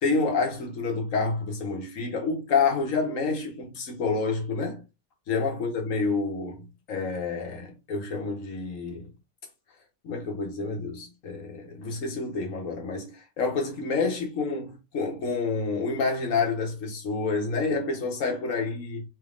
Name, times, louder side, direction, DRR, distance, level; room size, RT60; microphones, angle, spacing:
voice 1, 0.0-4.8 5.3-9.1 10.0-19.0, left 4 dB, 60° left, 1.5 m, -28 dB
4.0 x 3.4 x 2.5 m
omnidirectional pair, 1.6 m